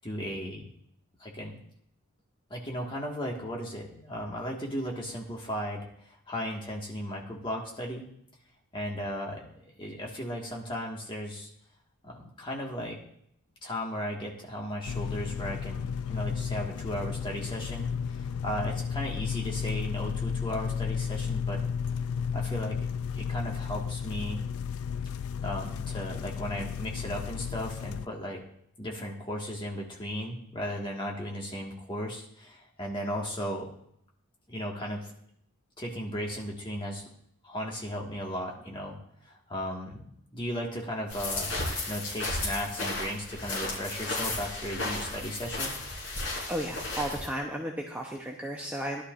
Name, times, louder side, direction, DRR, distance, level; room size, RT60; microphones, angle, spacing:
voice 1, 0.0-0.7 1.2-1.6 2.5-5.9 6.3-8.1 8.7-11.5 12.0-13.0 13.6-21.6 22.3-22.8 23.2-24.4 25.4-28.4 28.8-33.7 34.5-35.1 35.8-37.0 37.4-39.0 39.2-41.5 41.9-45.7, equal, 20° left, -1 dB, 1.7 m, -36 dB
sound 1, 14.9-28.1, left 7 dB, 75° left, 0.3 m, -33 dB
sound 2, 41.1-47.3, left 2 dB, 60° left, 3.6 m, -34 dB
voice 2, 46.5-49.0, equal, 5° right, -1 dB, 0.8 m, -34 dB
16.5 x 11.5 x 2.5 m, 0.70 s
head